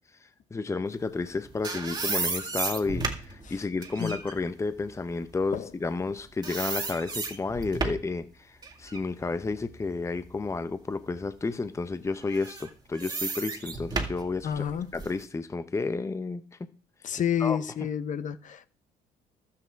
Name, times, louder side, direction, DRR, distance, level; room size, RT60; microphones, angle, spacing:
voice 1, 0.5-14.7 14.9-16.4 17.4-17.6, left 3 dB, 15° left, 0.8 m, -31 dB
sound 1, 1.2-6.1 6.4-8.2 8.6-10.6 11.1-11.2 12.2-15.2, right 3 dB, 25° right, 2.1 m, -34 dB
voice 2, 14.4-14.9 17.0-18.7, left 9 dB, 50° left, 0.9 m, -29 dB
12.5 x 8.5 x 4.6 m
cardioid pair, 110°, 17 cm